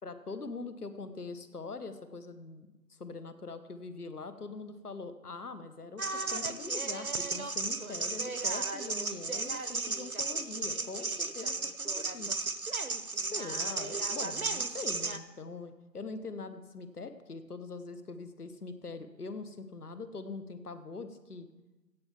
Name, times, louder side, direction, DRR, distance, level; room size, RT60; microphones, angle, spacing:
voice 1, 0.0-12.4 13.1-21.5, left 3 dB, 65° left, 11 dB, 1.1 m, -43 dB
sound 1, 6.0-15.2, right 3 dB, 55° right, 0.8 m, -34 dB
16.0 x 5.6 x 7.3 m, 1.1 s
figure-of-eight pair, 170°, 50 cm